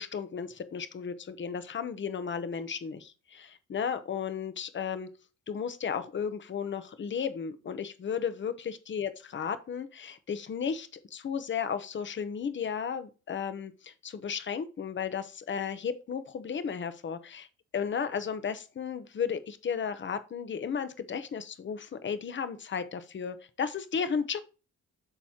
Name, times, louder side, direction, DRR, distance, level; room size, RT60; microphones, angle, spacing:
voice 1, 0.0-5.1 5.5-17.5 17.7-24.4, left 7 dB, 40° left, 0.9 m, -34 dB
12.0 x 4.1 x 2.9 m
cardioid pair, 90°, 30 cm